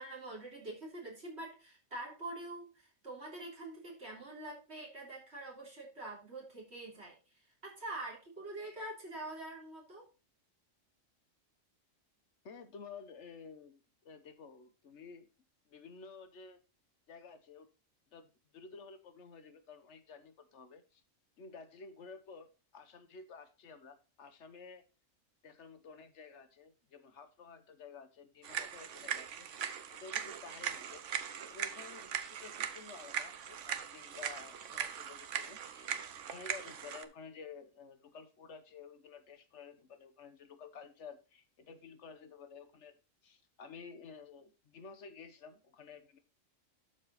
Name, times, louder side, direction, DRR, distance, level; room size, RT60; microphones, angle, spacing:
voice 1, 0.0-10.1, right 2 dB, 55° right, -4 dB, 3.6 m, -45 dB
voice 2, 12.4-15.3 15.7-16.6 17.1-17.7 18.1-18.3 18.5-21.0 21.4-24.8 25.4-29.5 29.9-31.1 31.5-35.9 36.3-43.0 43.2-46.2, left 5 dB, 60° left, 10 dB, 1.3 m, -52 dB
sound 1, 28.4-37.0, right 8 dB, 70° right, 1.2 m, -40 dB
12.0 x 4.9 x 4.1 m, 0.32 s
omnidirectional pair, 1.3 m